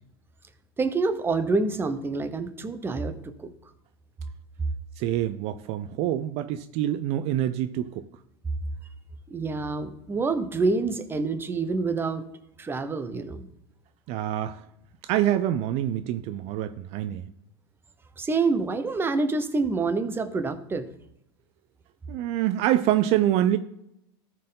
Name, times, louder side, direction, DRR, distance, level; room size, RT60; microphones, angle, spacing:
voice 1, 0.8-3.5 9.3-12.2 12.6-13.5 18.2-20.9, right 3 dB, 15° right, 0.8 m, -27 dB
voice 2, 5.0-8.1 14.1-14.6 15.0-17.2 22.1-23.6, right 12 dB, 50° right, 0.5 m, -26 dB
13.5 x 4.6 x 3.8 m
supercardioid pair, 115°, 13 cm